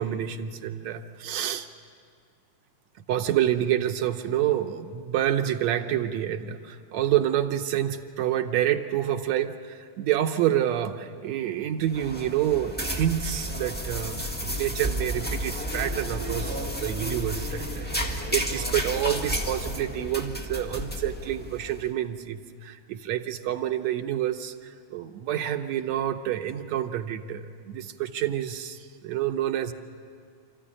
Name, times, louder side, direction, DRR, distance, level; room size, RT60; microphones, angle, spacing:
voice 1, 0.0-1.7 3.1-29.7, right 11 dB, 75° right, 5 dB, 2.0 m, -28 dB
sound 1, 11.8-21.8, equal, 15° left, 0.3 m, -32 dB
27.0 x 14.0 x 10.0 m, 2.1 s
omnidirectional pair, 3.3 m